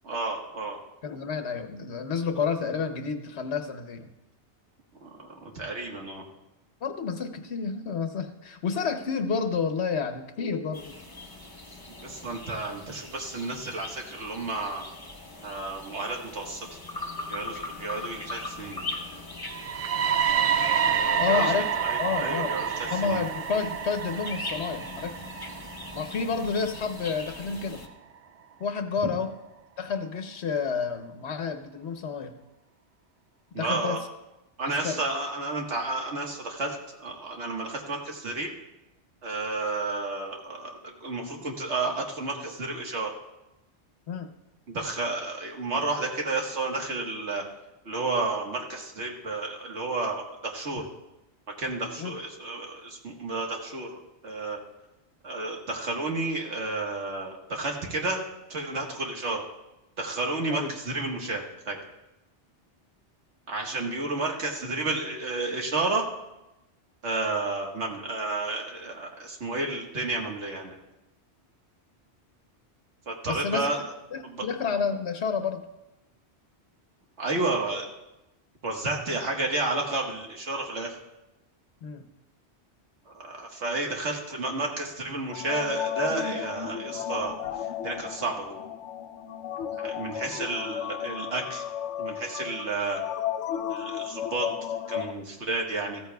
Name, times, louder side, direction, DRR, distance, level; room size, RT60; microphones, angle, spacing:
voice 1, 0.0-0.8 5.0-6.2 12.0-14.8 15.4-16.7 17.3-18.8 20.9-21.5 21.8-22.6 22.9-23.2 33.5-34.0 34.6-38.5 39.2-43.1 44.7-47.4 47.8-50.8 51.6-54.6 55.2-58.2 58.5-59.4 60.0-61.8 63.5-66.0 67.0-70.7 73.1-73.8 74.2-74.4 77.2-77.9 78.6-81.0 83.1-88.6 89.8-91.6 92.0-93.0 93.7-94.5 94.9-96.0, right 3 dB, 80° right, 1 dB, 1.8 m, -31 dB
voice 2, 1.0-4.1 6.8-10.9 21.2-21.7 22.0-22.5 22.8-25.1 25.9-27.8 28.6-29.3 29.8-32.4 33.5-34.0 34.6-35.0 44.1-44.3 52.0-52.1 60.5-60.7 73.3-73.7 74.1-75.6 81.8-82.1, left 5 dB, 70° left, 6 dB, 1.2 m, -30 dB
sound 1, 10.7-27.9, left 2 dB, 20° left, 1.1 m, -41 dB
sound 2, 19.5-27.4, right 8 dB, 60° right, 0.4 m, -28 dB
sound 3, 85.3-95.1, left 10 dB, 85° left, 0.9 m, -34 dB
14.5 x 14.0 x 2.3 m, 0.96 s
omnidirectional pair, 1.2 m